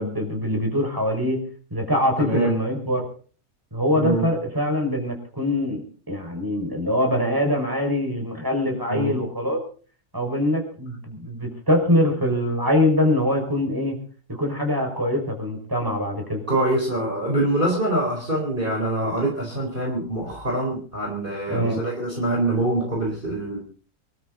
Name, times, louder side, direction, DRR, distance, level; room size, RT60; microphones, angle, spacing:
voice 1, 0.0-1.4 1.7-3.0 3.7-9.6 10.1-14.0 14.3-16.4 21.5-21.9, left 1 dB, 15° right, 2 dB, 5.5 m, -23 dB
voice 2, 2.2-2.6 4.0-4.3 8.9-9.2 16.5-23.6, right 1 dB, 35° right, 0 dB, 4.2 m, -24 dB
25.5 x 12.5 x 4.0 m, 0.42 s
omnidirectional pair, 1.6 m